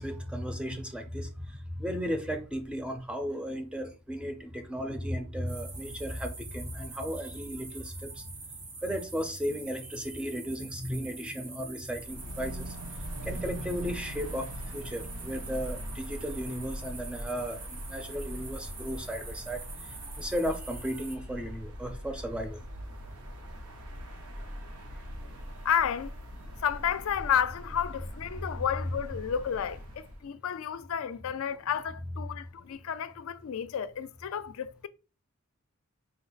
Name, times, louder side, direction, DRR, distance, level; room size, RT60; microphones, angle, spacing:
voice 1, 0.0-1.3 1.8-8.2 8.8-12.8 13.2-19.6 19.9-22.6, equal, 5° right, 0.5 m, -35 dB
sound 1, 5.5-21.2, right 3 dB, 70° right, 1.4 m, -45 dB
sound 2, 11.9-30.2, equal, 85° right, 0.8 m, -42 dB
voice 2, 25.6-26.1 26.6-34.9, left 8 dB, 65° left, 0.3 m, -31 dB
4.5 x 2.0 x 3.9 m
head